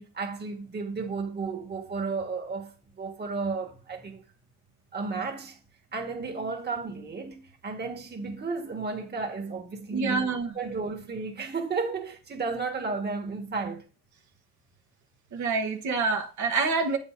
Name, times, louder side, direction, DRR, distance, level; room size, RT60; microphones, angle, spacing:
voice 1, 0.0-4.2 4.9-5.6 5.9-10.3 10.5-13.8, right 4 dB, 35° right, 1.6 m, -33 dB
voice 2, 9.9-10.5 15.3-17.0, right 4 dB, 70° right, 1.3 m, -27 dB
8.5 x 7.2 x 2.6 m
cardioid pair, 90°, 30 cm